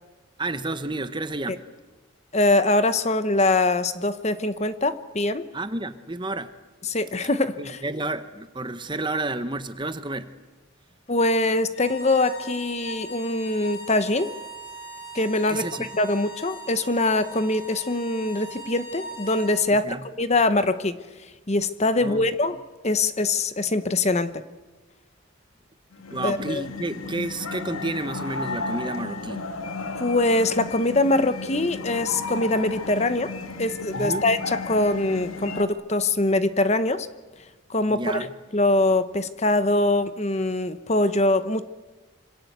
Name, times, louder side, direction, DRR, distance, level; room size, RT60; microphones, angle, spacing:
voice 1, 0.4-1.6 5.5-6.5 7.6-10.3 15.5-15.9 19.8-20.0 22.0-22.3 26.1-29.5 33.9-34.3 37.9-38.3, right 2 dB, 20° right, 11 dB, 1.1 m, -31 dB
voice 2, 2.3-5.5 6.8-7.8 11.1-14.3 15.1-15.7 15.9-21.0 21.5-22.6 22.8-24.4 26.2-26.6 30.0-33.3 33.6-37.1 37.7-41.6, left 2 dB, 30° left, 12 dB, 1.1 m, -23 dB
sound 1, 11.7-19.6, equal, 65° left, 6.4 m, -40 dB
sound 2, 25.9-35.6, left 3 dB, 80° left, 2.2 m, -34 dB
26.5 x 26.0 x 8.2 m, 1.2 s
head